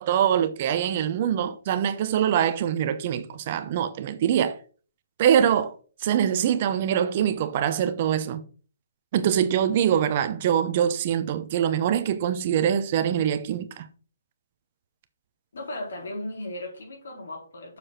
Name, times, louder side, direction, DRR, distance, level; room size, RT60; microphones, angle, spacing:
voice 1, 0.0-4.6 5.2-5.7 6.0-8.4 9.1-13.9, right 9 dB, 40° right, 0.8 m, -24 dB
voice 2, 15.5-17.8, left 1 dB, 75° left, 4.0 m, -36 dB
6.9 x 4.8 x 5.8 m
hypercardioid pair, 160°, 0 cm